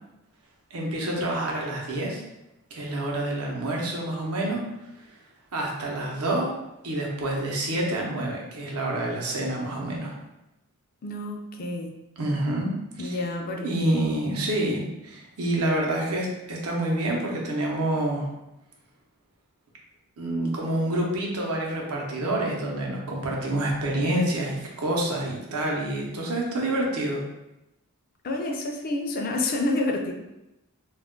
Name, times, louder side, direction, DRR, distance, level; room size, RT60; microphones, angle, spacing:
voice 1, 0.7-2.2 2.7-4.6 5.5-6.5 6.8-10.2 12.2-12.7 13.0-13.2 13.6-18.3 20.2-27.2, right 1 dB, 85° right, -1 dB, 0.7 m, -27 dB
voice 2, 11.0-11.9 13.0-14.2 28.2-30.1, left 2 dB, 40° left, 2 dB, 0.3 m, -29 dB
2.3 x 2.1 x 3.6 m, 0.93 s
head